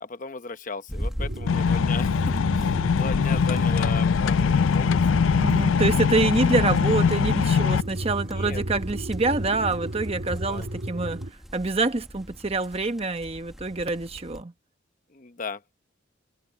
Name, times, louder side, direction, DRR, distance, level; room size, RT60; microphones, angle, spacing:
voice 1, 0.0-5.0 8.2-8.6 10.5-10.7 15.1-15.7, left 4 dB, 40° left, 0.9 m, -37 dB
sound 1, 0.9-14.4, equal, ahead, 1.3 m, -40 dB
sound 2, 1.2-11.3, right 1 dB, 65° right, 1.7 m, -33 dB
sound 3, 1.5-7.8, left 6 dB, 85° left, 0.4 m, -22 dB
voice 2, 5.3-11.2 11.5-14.5, right 3 dB, 30° right, 1.1 m, -26 dB
head